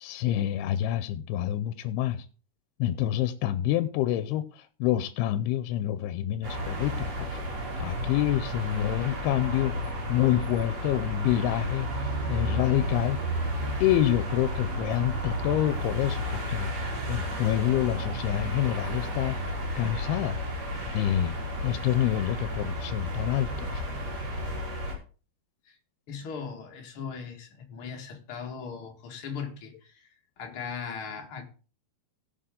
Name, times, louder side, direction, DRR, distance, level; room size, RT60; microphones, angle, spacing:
voice 1, 0.0-2.3 2.8-7.4 7.8-9.7 10.1-11.9 12.3-13.2 13.8-16.7 17.1-19.4 19.8-20.4 20.9-21.4 21.6-23.8, left 12 dB, 90° left, 2.6 m, -27 dB
sound 1, 6.4-24.9, equal, 45° right, 4.4 m, -32 dB
voice 2, 26.1-30.1 30.4-31.4, left 6 dB, 45° left, 2.1 m, -38 dB
17.0 x 7.1 x 3.8 m
omnidirectional pair, 4.5 m